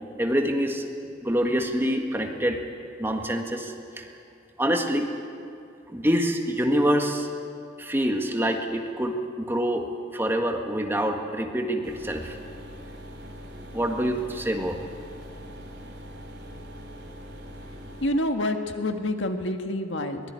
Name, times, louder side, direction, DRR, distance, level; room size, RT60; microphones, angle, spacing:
voice 1, 0.2-0.8 1.2-2.6 3.0-4.1 4.6-5.1 5.9-7.3 7.8-9.9 10.1-12.4 13.5-14.8, equal, 10° right, 3 dB, 1.7 m, -26 dB
sound 1, 11.8-18.1, equal, 75° right, 3.9 m, -42 dB
voice 2, 18.0-20.2, left 1 dB, 75° left, 5 dB, 1.8 m, -27 dB
23.0 x 19.0 x 9.6 m, 2.4 s
head